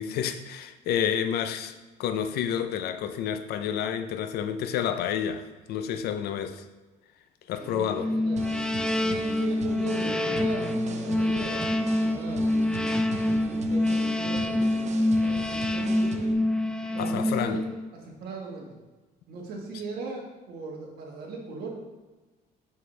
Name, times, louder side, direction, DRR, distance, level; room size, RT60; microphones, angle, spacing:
voice 1, 0.0-6.7 7.5-8.1 17.0-17.6, left 8 dB, 70° left, 0.5 m, -29 dB
voice 2, 7.6-8.4 9.0-12.6 13.0-16.3 16.9-17.6 18.0-18.8 19.3-21.7, right 3 dB, 70° right, 1.5 m, -39 dB
sound 1, 8.0-17.9, left 1 dB, 5° left, 0.3 m, -26 dB
sound 2, 8.4-16.3, right 4 dB, 45° right, 0.7 m, -40 dB
5.9 x 5.4 x 3.2 m
cardioid pair, 110°, 17 cm